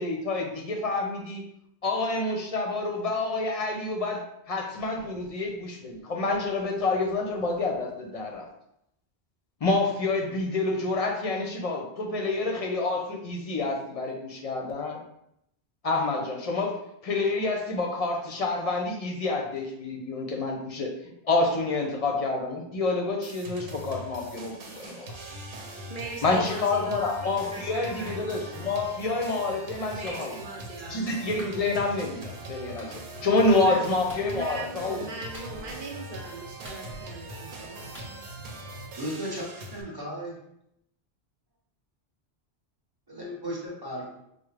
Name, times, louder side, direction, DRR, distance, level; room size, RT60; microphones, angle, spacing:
voice 1, 0.0-1.4 1.8-8.5 9.6-15.0 15.8-20.9 21.2-25.1 26.2-30.4 30.9-35.0, left 3 dB, 45° left, 0 dB, 0.6 m, -28 dB
sound 1, 23.2-39.8, right 1 dB, 90° right, 0.9 m, -41 dB
voice 2, 25.9-27.2 27.5-28.2 29.9-31.1 33.6-33.8 34.3-38.2, right 2 dB, 60° right, 1 dB, 0.8 m, -40 dB
Clapping, 30.0-30.2 31.4-31.6 32.8-32.9 34.1-34.3 35.3-35.8 36.6-37.2 37.9-38.1, equal, ahead, 1.1 m, -45 dB
voice 3, 39.0-39.4 39.7-40.4 43.1-44.2, equal, 25° right, -4 dB, 0.9 m, -35 dB
4.8 x 2.1 x 3.2 m, 0.77 s
omnidirectional pair, 1.1 m